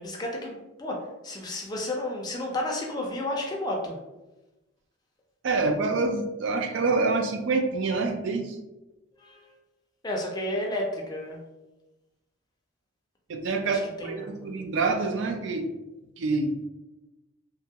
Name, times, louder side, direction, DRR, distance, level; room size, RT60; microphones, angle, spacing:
voice 1, 0.0-4.0 9.2-9.5 10.0-11.4 13.6-14.5, left 1 dB, 20° left, 0 dB, 0.4 m, -32 dB
voice 2, 5.4-8.6 13.3-15.7 16.2-16.6, right 3 dB, 60° right, 4 dB, 0.3 m, -26 dB
2.9 x 2.3 x 2.7 m, 1.0 s
head